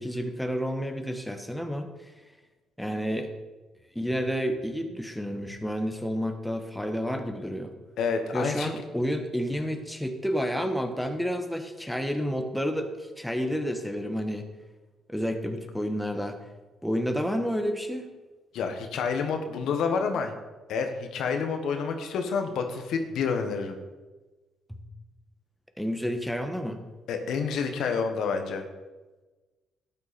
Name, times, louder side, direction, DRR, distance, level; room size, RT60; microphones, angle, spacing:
voice 1, 0.0-1.9 2.8-3.3 3.9-7.7 8.3-12.9 13.2-14.5 15.1-16.4 16.8-18.1 24.7-24.8 25.8-26.8, equal, ahead, 5 dB, 1.3 m, -30 dB
voice 2, 8.0-8.7 18.5-20.3 20.7-23.8 27.1-28.6, left 5 dB, 80° left, 5 dB, 1.3 m, -28 dB
12.5 x 9.4 x 4.2 m, 1.2 s
cardioid pair, 90°, 0 cm